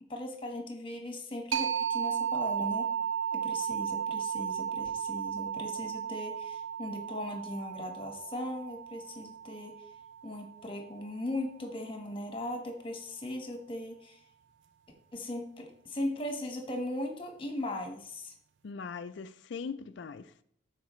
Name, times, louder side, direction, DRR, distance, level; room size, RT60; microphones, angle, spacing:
voice 1, 0.0-2.9 3.3-9.9 10.2-14.2 15.1-18.3, left 1 dB, 25° left, 1.3 m, -38 dB
sound 1, 1.5-10.9, right 8 dB, 65° right, 0.5 m, -35 dB
voice 2, 18.6-20.3, left 5 dB, 60° left, 0.4 m, -40 dB
12.5 x 4.6 x 3.1 m
head